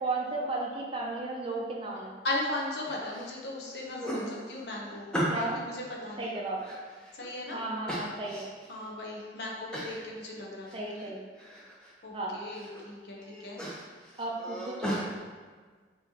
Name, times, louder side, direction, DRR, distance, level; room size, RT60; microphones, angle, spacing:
voice 1, 0.0-2.1 5.3-5.6 6.2-6.6 7.5-8.4 10.7-11.2 12.1-12.3 14.2-15.0, right 2 dB, 30° right, -3 dB, 0.6 m, -34 dB
voice 2, 2.2-6.3 7.1-7.6 8.7-11.1 12.0-13.6, left 1 dB, 65° left, -2 dB, 0.9 m, -37 dB
sound 1, 2.5-3.3 3.6-5.6 6.1-7.3 7.9-8.7 9.1-9.2 9.7-10.0 10.4-11.1 11.4-11.9 12.3-12.8 13.2-15.1, equal, 5° left, 0.7 m, -37 dB
5.8 x 3.0 x 2.9 m, 1.5 s
head